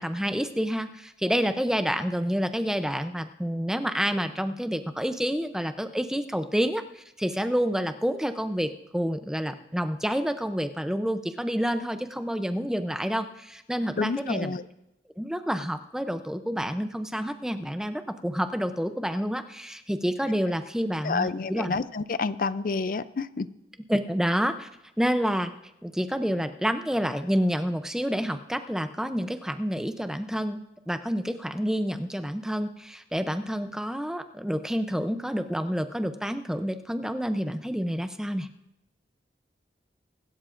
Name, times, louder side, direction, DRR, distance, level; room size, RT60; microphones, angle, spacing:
voice 1, 0.0-14.5 15.2-21.8 23.9-24.7 25.0-25.5 25.8-30.6 30.9-38.5, equal, 5° right, 9 dB, 0.5 m, -28 dB
voice 2, 14.0-14.6 21.0-23.5, left 4 dB, 45° left, 15 dB, 0.4 m, -29 dB
24.5 x 12.5 x 2.5 m, 0.87 s
head